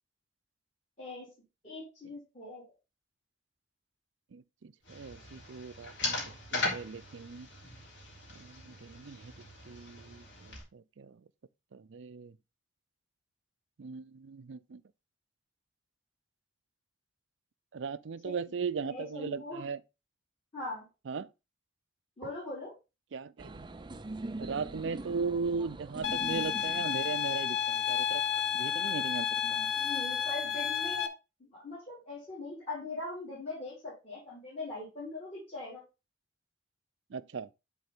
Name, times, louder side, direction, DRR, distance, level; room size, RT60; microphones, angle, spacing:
voice 1, 1.0-1.3 1.6-2.6 18.2-18.3 18.8-19.6 20.5-20.8 22.2-22.7 29.4-31.1 31.6-35.8, left 2 dB, 35° left, 4.2 m, -41 dB
voice 2, 4.3-6.2 6.5-7.5 8.3-9.3 9.7-11.2 11.7-12.4 13.8-14.8 17.7-19.8 21.1-21.3 23.1-23.7 24.4-28.2 28.5-29.3 37.1-37.5, right 5 dB, 75° right, 0.5 m, -38 dB
sound 1, 4.9-10.6, left 2 dB, 65° left, 3.5 m, -39 dB
sound 2, 23.4-27.8, right 2 dB, 25° right, 0.5 m, -43 dB
sound 3, 26.0-31.1, left 8 dB, 80° left, 0.9 m, -31 dB
10.5 x 4.3 x 3.6 m
head